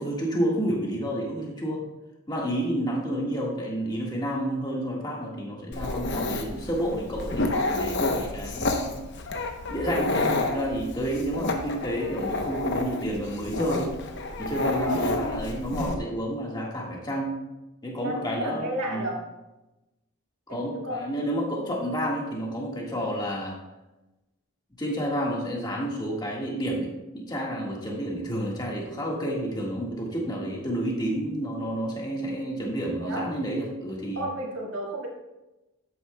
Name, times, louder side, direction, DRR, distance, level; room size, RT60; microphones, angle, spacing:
voice 1, 0.0-1.8 2.3-9.0 9.7-13.9 14.4-17.3 17.8-19.0 20.5-23.6 24.8-34.2, equal, 20° left, -2 dB, 1.6 m, -30 dB
Dog, 5.7-16.0, left 2 dB, 55° left, 0.9 m, -29 dB
voice 2, 6.2-6.7 14.8-15.2 18.0-19.2 20.5-21.0 33.0-33.2 34.2-35.1, right 1 dB, 70° right, -3 dB, 2.0 m, -33 dB
11.0 x 8.4 x 2.2 m, 1.0 s
head